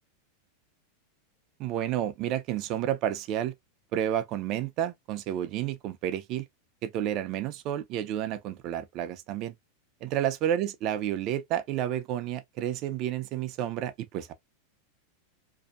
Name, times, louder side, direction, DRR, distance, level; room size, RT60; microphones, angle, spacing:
voice 1, 1.6-3.5 3.9-6.4 6.8-9.5 10.0-14.3, right 11 dB, 45° right, 0.4 m, -30 dB
2.7 x 2.1 x 2.3 m
supercardioid pair, 120°, 0 cm